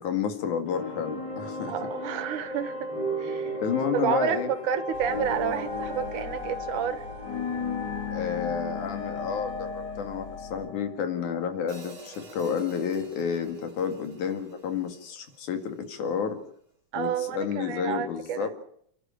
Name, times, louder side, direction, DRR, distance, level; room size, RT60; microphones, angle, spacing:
voice 1, 0.0-1.8 3.6-4.5 8.1-16.4 16.9-18.5, left 7 dB, 80° left, 7 dB, 3.6 m, -30 dB
sound 1, 0.7-11.9, left 2 dB, 35° left, 4.0 m, -34 dB
voice 2, 1.7-2.9 3.2-3.6 3.9-7.1 16.9-18.5, right 9 dB, 85° right, 12 dB, 2.9 m, -30 dB
sound 2, 4.9-10.7, left 6 dB, 50° left, 3.9 m, -45 dB
Hi-hat, 11.7-15.9, right 3 dB, 40° right, 3.8 m, -50 dB
29.5 x 11.5 x 8.9 m, 0.69 s
omnidirectional pair, 3.5 m